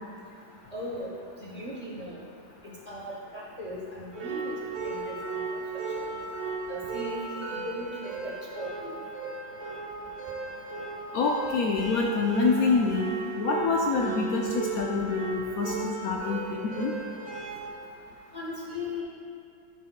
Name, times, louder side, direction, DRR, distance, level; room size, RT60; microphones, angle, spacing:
voice 1, 0.7-1.1 1.4-2.2 2.9-4.5 4.8-5.2 6.7-8.9 18.3-19.0, left 1 dB, 45° left, -5 dB, 0.5 m, -38 dB
sound 1, 4.1-17.7, right 4 dB, 75° right, 1.9 m, -35 dB
voice 2, 11.1-13.1 13.4-16.9, left 4 dB, 80° left, 0 dB, 0.8 m, -26 dB
13.0 x 6.4 x 2.2 m, 2.4 s
omnidirectional pair, 2.1 m